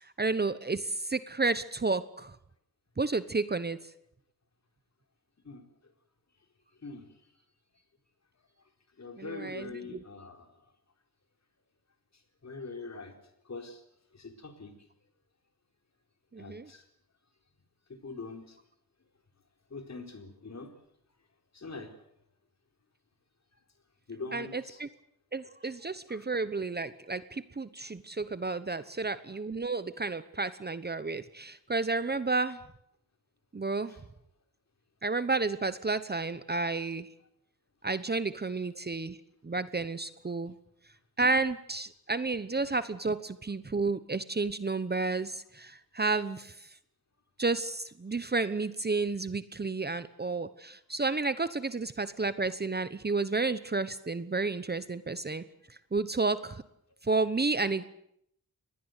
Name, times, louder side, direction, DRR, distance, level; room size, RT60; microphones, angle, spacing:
voice 1, 0.2-2.4 3.0-3.8 9.2-10.0 16.3-16.7 24.3-24.9 25.3-32.6 33.5-33.9 35.0-37.1 37.8-39.2 39.4-40.5 41.2-46.7 47.4-55.4 55.9-56.6 57.0-57.8, right 3 dB, 30° right, 14 dB, 1.0 m, -31 dB
voice 2, 9.0-10.5 12.4-13.1 13.5-13.8 14.1-14.8 16.4-16.8 17.9-18.6 19.7-20.7 21.5-21.9 24.1-24.8 26.1-26.2, left 3 dB, 50° left, 5 dB, 4.4 m, -43 dB
25.5 x 20.0 x 8.2 m, 0.75 s
wide cardioid pair, 100°, 36 cm